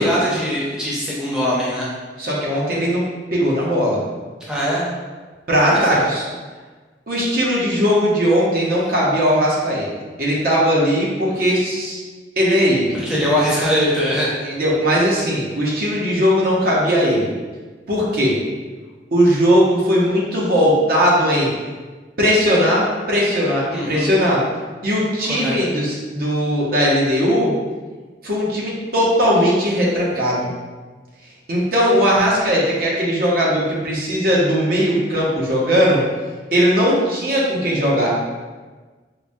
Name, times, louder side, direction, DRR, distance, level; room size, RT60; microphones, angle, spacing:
voice 1, 0.0-1.9 4.5-4.8 5.7-6.1 12.9-14.3 23.7-24.1 25.3-25.5, equal, 5° right, -8 dB, 0.7 m, -21 dB
voice 2, 2.2-3.0 3.3-4.0 5.5-6.3 7.1-9.9 10.2-12.0 12.4-13.0 14.4-17.3 17.9-18.4 19.1-21.5 22.2-24.4 24.8-27.5 28.2-30.5 31.5-36.0 36.5-38.1, equal, 55° right, -5 dB, 0.8 m, -18 dB
4.7 x 2.1 x 2.6 m, 1.4 s
head